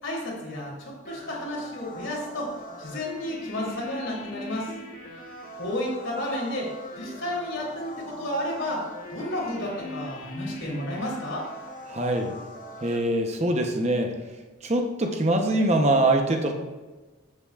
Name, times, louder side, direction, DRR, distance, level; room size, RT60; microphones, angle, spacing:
voice 1, 0.0-4.7 5.5-11.5, left 1 dB, 70° left, -3 dB, 3.1 m, -32 dB
sound 1, 1.1-13.0, left 1 dB, 40° left, 1.6 m, -41 dB
voice 2, 11.9-12.3 12.8-14.2 14.6-16.5, right 1 dB, 30° right, 3 dB, 0.8 m, -23 dB
14.5 x 7.2 x 2.4 m, 1.3 s
head